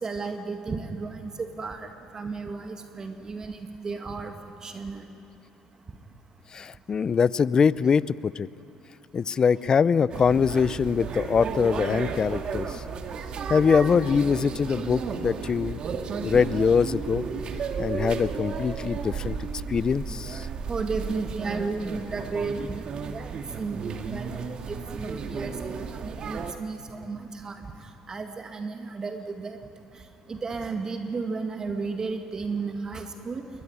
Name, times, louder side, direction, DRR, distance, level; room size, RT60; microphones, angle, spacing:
voice 1, 0.0-4.3 4.6-5.0 10.2-10.4 20.7-24.3 24.7-27.6 28.1-29.6 30.3-33.4, right 4 dB, 30° right, 6 dB, 2.0 m, -33 dB
voice 2, 6.5-8.5 9.1-12.8 13.5-15.8 16.2-17.3 17.8-19.4 19.7-20.5, left 6 dB, 35° left, 20 dB, 0.6 m, -23 dB
sound 1, 10.1-26.5, right 6 dB, 50° right, 2.0 m, -33 dB
22.5 x 20.0 x 9.6 m, 2.8 s
supercardioid pair, 75°, 2 cm